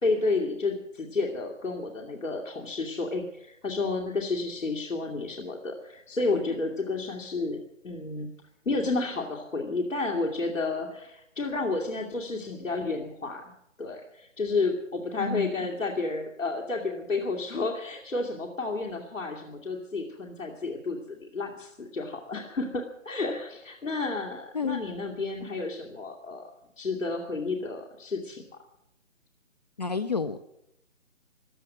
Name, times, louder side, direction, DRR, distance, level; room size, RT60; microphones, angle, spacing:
voice 1, 0.0-7.6 7.8-8.3 8.6-13.5 13.8-26.5 26.8-28.4, left 3 dB, 80° left, -1 dB, 2.6 m, -31 dB
voice 2, 15.2-15.5 24.5-24.8 29.8-30.4, left 5 dB, 35° left, 9 dB, 0.6 m, -29 dB
15.5 x 12.0 x 7.7 m, 0.82 s
figure-of-eight pair, 145°, 38 cm